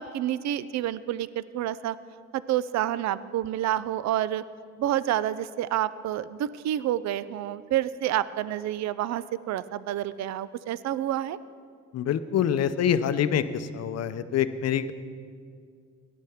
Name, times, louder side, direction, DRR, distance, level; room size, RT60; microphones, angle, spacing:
voice 1, 0.0-2.0 2.3-4.4 4.8-11.4, right 12 dB, 65° right, 16 dB, 0.5 m, -28 dB
voice 2, 11.9-14.9, left 9 dB, 55° left, 12 dB, 0.6 m, -26 dB
17.5 x 11.0 x 3.5 m, 2.2 s
cardioid pair, 90°, 30 cm